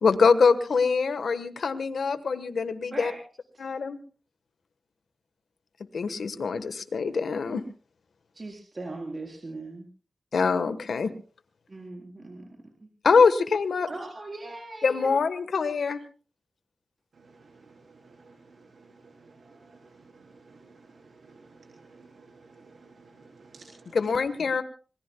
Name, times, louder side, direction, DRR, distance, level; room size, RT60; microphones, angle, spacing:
voice 1, 0.0-3.1 3.6-4.0 5.9-7.6 10.3-11.1 13.0-13.9 14.8-16.0 23.9-24.6, left 5 dB, 85° left, 11 dB, 1.2 m, -24 dB
voice 2, 8.3-9.9 11.7-12.5 12.8-12.9 13.9-15.1, right 2 dB, 45° right, 0 dB, 4.2 m, -39 dB
voice 3, 18.0-18.4 19.0-19.8 20.5-21.4 21.7-23.9, right 3 dB, 85° right, 0 dB, 3.6 m, -53 dB
26.0 x 21.0 x 2.2 m, 0.38 s
cardioid pair, 55°, 0 cm